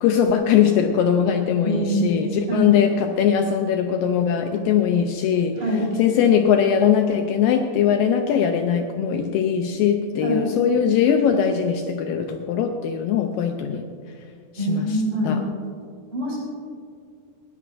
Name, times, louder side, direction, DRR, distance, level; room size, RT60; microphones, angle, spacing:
voice 1, 0.0-5.5 6.0-13.9 14.5-15.0 15.3-15.4, left 8 dB, 80° left, 5 dB, 2.1 m, -20 dB
voice 2, 1.6-2.0 2.5-2.7 5.6-5.9 10.2-10.5 14.6-15.4 16.1-16.4, equal, 50° right, -4 dB, 5.0 m, -24 dB
19.0 x 15.0 x 2.5 m, 2.3 s
omnidirectional pair, 4.4 m